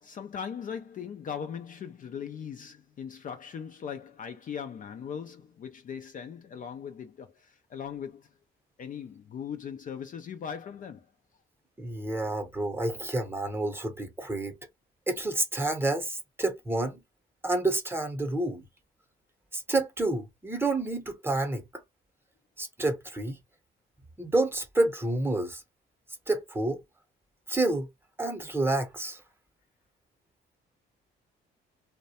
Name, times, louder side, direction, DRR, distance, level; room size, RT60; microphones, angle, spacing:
voice 1, 0.0-8.3 8.8-11.4, left 7 dB, 40° left, 0.4 m, -39 dB
voice 2, 11.8-14.6 15.1-17.0 17.4-18.6 19.5-21.7 22.6-23.4 24.2-25.6 26.3-26.8 27.5-27.9 28.2-29.2, right 2 dB, 10° right, 0.8 m, -29 dB
2.3 x 2.1 x 2.8 m
cardioid pair, 90°, 20 cm